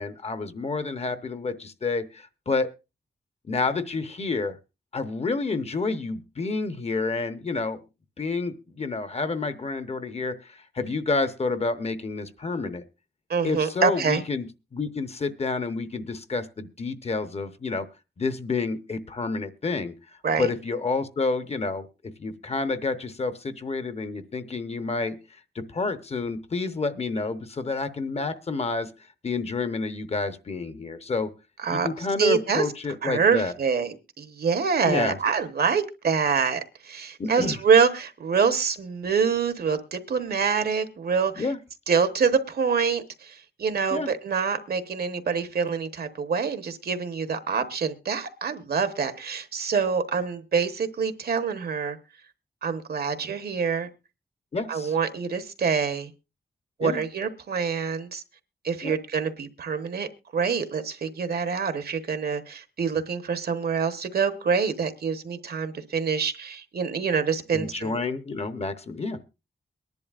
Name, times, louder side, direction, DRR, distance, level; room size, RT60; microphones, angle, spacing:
voice 1, 0.0-2.7 3.5-4.6 4.9-7.8 8.2-12.8 13.4-17.9 18.2-19.9 20.4-25.2 25.5-28.9 29.2-31.3 31.7-33.5 34.9-35.2 37.2-37.6 41.3-41.6 43.9-44.1 54.5-54.9 56.8-57.0 58.8-58.9 67.5-69.2, left 3 dB, 40° left, 0.8 m, -29 dB
voice 2, 13.3-14.2 20.2-20.5 31.6-31.9 32.2-32.7 33.0-41.5 41.9-52.0 52.6-53.9 54.7-56.1 56.8-58.2 58.6-68.0, right 6 dB, 65° right, 1.0 m, -26 dB
22.5 x 10.5 x 2.4 m
wide cardioid pair, 175°, 17 cm